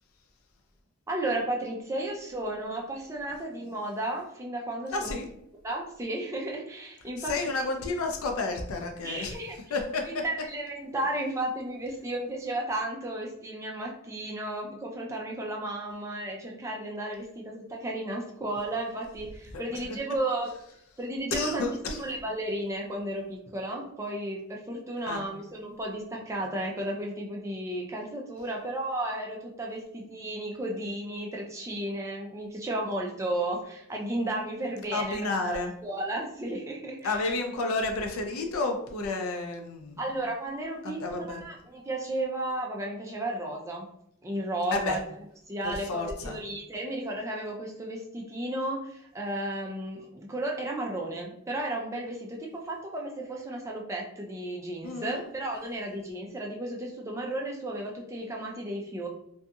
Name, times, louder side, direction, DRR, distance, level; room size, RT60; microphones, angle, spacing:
voice 1, 1.1-5.2 5.6-7.3 9.0-9.6 10.1-20.5 21.0-37.2 40.0-43.9 44.2-45.0 45.5-59.1, right 1 dB, 15° right, -1 dB, 0.4 m, -33 dB
voice 2, 4.9-5.3 7.2-9.4 9.7-10.2 19.5-19.6 21.3-22.0 25.1-25.2 34.9-35.7 37.0-40.0 40.8-41.5 44.7-45.0 45.6-46.4 54.8-55.2, left 3 dB, 90° left, 3 dB, 0.5 m, -31 dB
2.7 x 2.6 x 2.3 m, 0.73 s
head